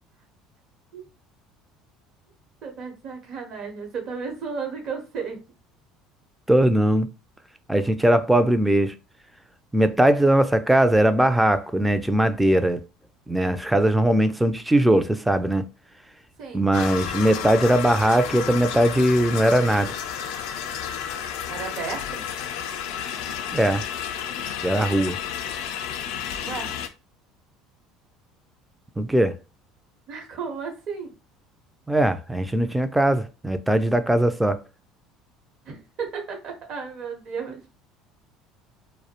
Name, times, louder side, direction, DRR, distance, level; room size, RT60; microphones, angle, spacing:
voice 1, 2.6-5.4 16.4-16.7 21.5-22.2 26.4-26.7 30.1-31.1 35.7-37.6, right 5 dB, 55° right, 0.8 m, -33 dB
voice 2, 6.5-7.1 7.7-8.9 9.7-12.8 13.3-15.6 16.5-19.9 23.5-23.8 24.6-25.2 29.0-29.3 31.9-34.6, right 1 dB, 5° right, 0.3 m, -20 dB
sound 1, 16.7-26.9, left 9 dB, 75° left, 0.3 m, -31 dB
2.3 x 2.0 x 2.8 m
supercardioid pair, 90°, 0 cm